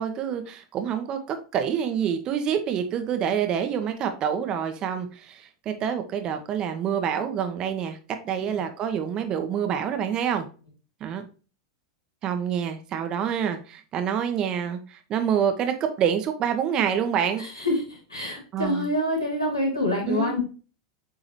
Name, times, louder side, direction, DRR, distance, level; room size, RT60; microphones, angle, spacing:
voice 1, 0.0-8.0 8.2-10.5 11.0-11.2 12.2-17.4 18.5-18.8 20.1-20.3, right 8 dB, 35° right, 7 dB, 1.1 m, -27 dB
voice 2, 17.4-20.5, left 1 dB, 90° left, -3 dB, 3.0 m, -26 dB
8.3 x 3.8 x 3.1 m, 0.36 s
figure-of-eight pair, 90°, 2 cm